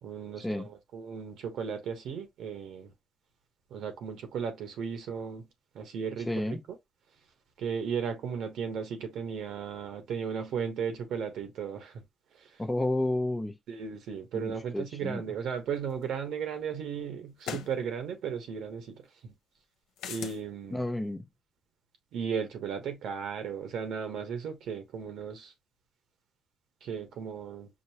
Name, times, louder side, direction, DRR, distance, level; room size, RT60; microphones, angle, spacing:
voice 1, 0.0-2.9 3.7-5.5 5.7-6.6 7.6-12.0 12.4-12.5 13.7-19.3 20.1-20.8 22.1-25.5 26.8-27.7, right 7 dB, 75° right, 1.2 m, -35 dB
voice 2, 6.3-6.6 12.6-13.6 14.3-15.2 20.7-21.3, left 1 dB, 10° left, 0.6 m, -31 dB
sound 1, 16.0-16.1 17.4-17.7 20.0-20.4, left 8 dB, 90° left, 0.7 m, -38 dB
5.3 x 2.0 x 2.9 m
cardioid pair, 90°, 0 cm